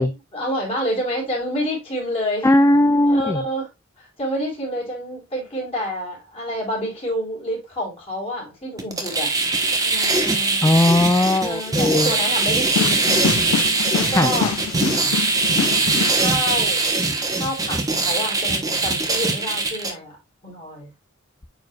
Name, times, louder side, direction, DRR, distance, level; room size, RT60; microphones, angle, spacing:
voice 1, 0.0-2.5 3.1-3.7 4.0-9.3 9.8-10.7 11.4-13.3 13.9-14.5 15.8-16.9 17.3-20.2 20.4-20.9, equal, 30° left, 4.0 m, -28 dB
voice 2, 2.4-3.4 10.6-12.1 14.2-14.3, left 1 dB, 15° left, 0.3 m, -17 dB
sound 1, 8.8-19.9, right 3 dB, 20° right, 1.1 m, -21 dB
sound 2, 12.8-16.2, left 8 dB, 90° left, 0.3 m, -26 dB
8.8 x 4.8 x 2.3 m
head